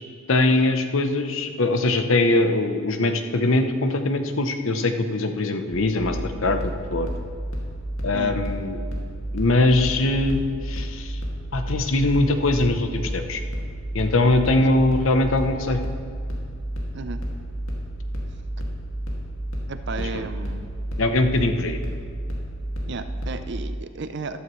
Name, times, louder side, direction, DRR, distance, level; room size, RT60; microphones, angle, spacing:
voice 1, 0.3-7.1 8.0-8.8 9.3-11.2 11.5-13.4 13.9-15.8 20.0-20.3 21.0-21.8, left 2 dB, 70° left, 7 dB, 0.8 m, -22 dB
sound 1, 5.7-23.6, right 1 dB, 85° left, 2.2 m, -31 dB
voice 2, 19.7-20.7 22.9-24.4, right 3 dB, 55° right, 10 dB, 0.5 m, -33 dB
14.0 x 12.5 x 3.2 m, 2.1 s
head